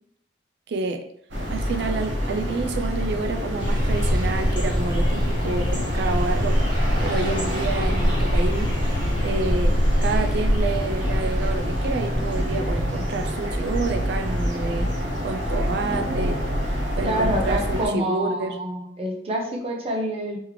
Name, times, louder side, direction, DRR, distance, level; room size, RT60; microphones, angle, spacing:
voice 1, 0.7-1.0 1.5-6.6 7.0-8.7 9.2-14.9 15.2-16.4 17.0-18.6, right 3 dB, 60° right, 5 dB, 0.3 m, -29 dB
sound 1, 1.3-17.9, equal, 85° right, 0.9 m, -27 dB
sound 2, 3.6-12.7, equal, 25° left, 1.3 m, -24 dB
Thunder, 3.7-16.6 17.5-17.6, left 2 dB, 85° left, 0.4 m, -38 dB
voice 2, 17.0-20.4, equal, 30° right, 0 dB, 0.7 m, -27 dB
3.5 x 3.1 x 3.2 m, 0.70 s
head